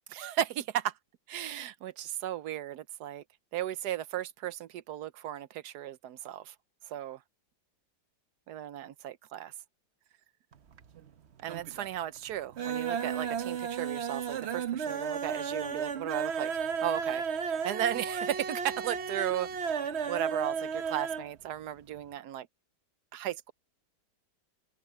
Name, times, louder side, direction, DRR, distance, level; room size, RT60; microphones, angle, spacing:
voice 1, 0.1-0.9 1.3-3.2 3.5-6.5 6.9-7.2 8.5-9.5 11.4-16.5 16.8-19.8 20.1-22.5 23.1-23.5, right 11 dB, 70° right, 1.2 m, -35 dB
sound 1, 10.5-11.1 11.4-12.0 12.3-21.3 21.6-21.7 22.0-22.1, right 6 dB, 45° right, 1.0 m, -34 dB
open air
omnidirectional pair, 1.9 m